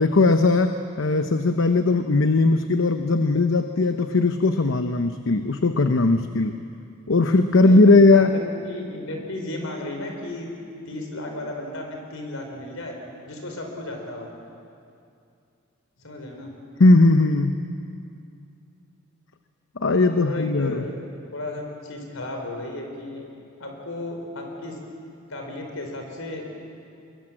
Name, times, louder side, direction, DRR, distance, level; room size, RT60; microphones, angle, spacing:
voice 1, 0.0-6.6 7.1-8.4 16.8-17.6 19.8-20.8, left 3 dB, 65° left, 8 dB, 0.8 m, -18 dB
voice 2, 7.6-10.5 10.9-13.0 13.3-14.3 16.0-16.5 20.0-20.9 21.3-23.3 23.6-24.8 25.3-26.5, left 1 dB, 80° left, 2 dB, 4.7 m, -34 dB
23.0 x 22.0 x 7.6 m, 2.5 s
head